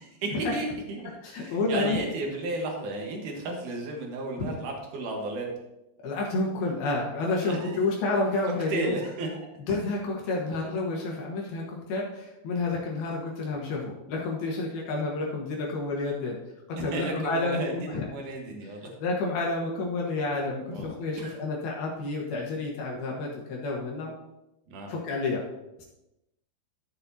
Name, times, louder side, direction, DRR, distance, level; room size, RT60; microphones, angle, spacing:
voice 1, 0.0-5.5 7.4-7.8 8.7-9.5 16.8-18.9 20.7-21.3 24.7-24.9, right 2 dB, 70° right, 1 dB, 2.0 m, -34 dB
voice 2, 1.2-2.0 4.4-4.5 6.0-9.0 9.7-16.4 16.7-18.1 19.0-24.1 24.9-25.4 25.8-25.9, left 3 dB, 65° left, -2 dB, 2.8 m, -30 dB
13.5 x 6.8 x 2.8 m, 0.91 s
omnidirectional pair, 5.5 m